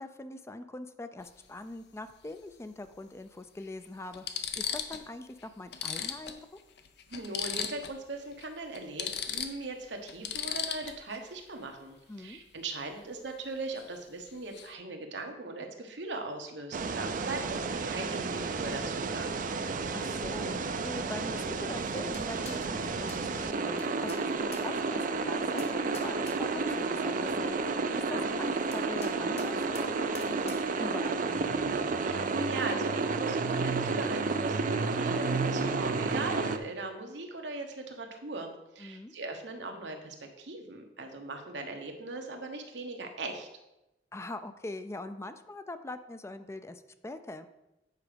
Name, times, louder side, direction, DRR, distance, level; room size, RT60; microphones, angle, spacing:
voice 1, 0.0-6.4 12.1-12.4 19.9-27.7 28.1-31.7 38.8-39.1 44.1-47.5, left 2 dB, 15° left, 10 dB, 0.4 m, -42 dB
sound 1, 1.2-1.4 2.9-3.0 3.6-3.7 4.1-5.1 5.4-5.5 5.7-8.0 8.3-8.4 8.7-11.2 13.8-14.0 14.3-14.7, left 8 dB, 65° left, 0.7 m, -36 dB
voice 2, 7.1-19.4 28.0-28.2 32.0-43.5, right 2 dB, 90° right, 3 dB, 1.2 m, -39 dB
sound 2, 16.7-36.6, right 4 dB, 50° right, 0.5 m, -31 dB
sound 3, 21.9-31.1, left 3 dB, 40° left, 1.0 m, -51 dB
8.3 x 4.9 x 5.1 m, 0.93 s
head